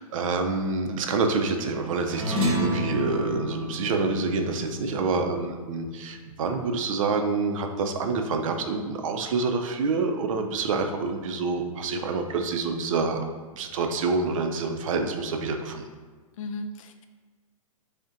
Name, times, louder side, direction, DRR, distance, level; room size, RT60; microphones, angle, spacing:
voice 1, 0.1-13.2 13.5-15.8, right 4 dB, 65° right, 5 dB, 0.4 m, -27 dB
sound 1, 2.1-6.8, left 1 dB, 30° right, 0.9 m, -31 dB
voice 2, 4.8-5.2 16.4-17.1, left 2 dB, 65° left, 7 dB, 0.4 m, -37 dB
5.0 x 2.2 x 2.5 m, 1.4 s
hypercardioid pair, 125°, 18 cm